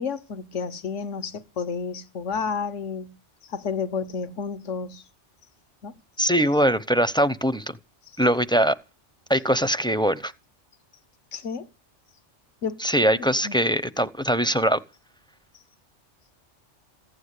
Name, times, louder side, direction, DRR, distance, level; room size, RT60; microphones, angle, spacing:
voice 1, 0.0-3.2 3.5-5.0 5.8-6.2 11.3-11.7 12.6-12.8 13.2-13.6, left 5 dB, 80° left, 1.5 m, -31 dB
voice 2, 6.2-7.8 8.2-8.8 9.3-10.3 12.8-14.8, equal, 5° left, 0.6 m, -22 dB
15.5 x 9.8 x 8.3 m
omnidirectional pair, 1.2 m